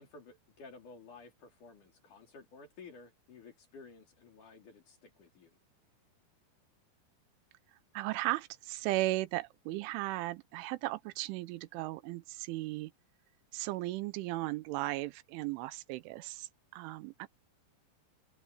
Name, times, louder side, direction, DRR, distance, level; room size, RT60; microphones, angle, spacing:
voice 1, 0.0-5.6, left 4 dB, 45° left, 4.7 m, -54 dB
voice 2, 7.9-12.9 13.5-17.3, right 18 dB, 85° right, 3.3 m, -36 dB
open air
omnidirectional pair, 5.5 m